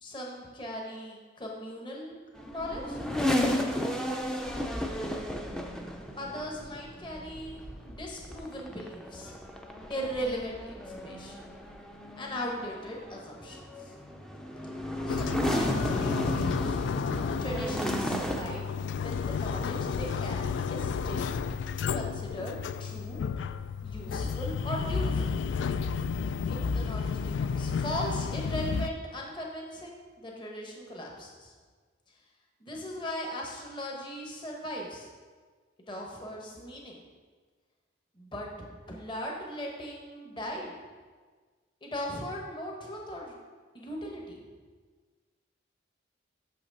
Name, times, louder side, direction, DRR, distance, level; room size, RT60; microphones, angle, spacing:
voice 1, 0.0-2.2 2.5-3.0 6.2-9.4 9.9-11.5 12.1-13.9 15.1-16.8 17.4-18.7 19.0-21.4 21.9-23.2 23.8-25.3 26.5-31.5 32.6-35.1 35.9-37.0 38.1-40.7 41.8-43.3 43.7-44.4, equal, 25° left, -1 dB, 1.1 m, -38 dB
sound 1, 2.4-18.4, left 1 dB, 5° left, 0.5 m, -34 dB
sound 2, 15.1-28.9, left 6 dB, 75° left, 0.3 m, -32 dB
6.8 x 5.8 x 5.4 m, 1.5 s
head